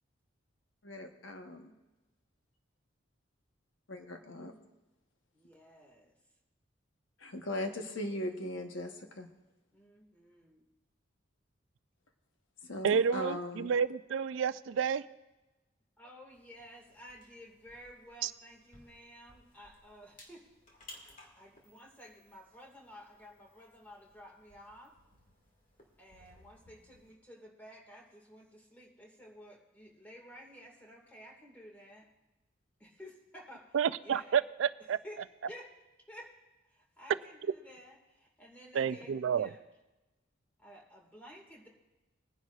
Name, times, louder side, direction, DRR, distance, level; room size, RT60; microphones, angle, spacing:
voice 1, 0.8-1.7 3.9-4.5 7.2-9.3 12.6-13.7, left 1 dB, 75° left, 5 dB, 1.1 m, -39 dB
voice 2, 5.3-6.1 9.7-10.6 16.0-20.5 20.9-24.9 26.0-32.1 32.8-33.8 34.0-34.4 35.0-35.2 35.5-35.7 36.1-36.4 36.7-39.6 40.6-41.7, equal, 10° left, -1 dB, 1.9 m, -53 dB
voice 3, 12.8-15.0 18.2-18.3 33.7-35.0 38.7-39.5, right 7 dB, 75° right, 15 dB, 0.4 m, -30 dB
sound 1, 16.3-27.1, left 1 dB, 40° left, 2.0 m, -60 dB
21.5 x 10.5 x 2.4 m, 1.1 s
head